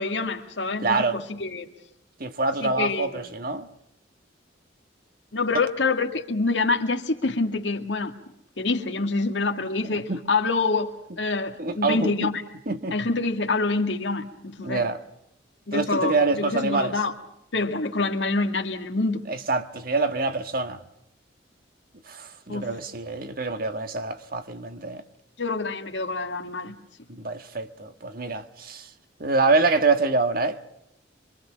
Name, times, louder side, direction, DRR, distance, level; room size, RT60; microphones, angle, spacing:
voice 1, 0.0-1.7 2.6-3.3 5.3-8.1 8.6-12.4 12.9-14.9 15.7-17.1 17.5-19.2 22.5-22.7 25.4-26.8, left 3 dB, 70° left, 2.1 m, -26 dB
voice 2, 0.8-1.2 2.2-3.7 5.5-5.6 10.1-10.2 11.6-12.3 12.7-12.9 14.6-15.0 15.7-16.9 19.3-20.8 22.1-25.0 27.1-28.9 29.2-30.6, right 3 dB, 50° right, 1.7 m, -25 dB
25.5 x 25.0 x 6.3 m
head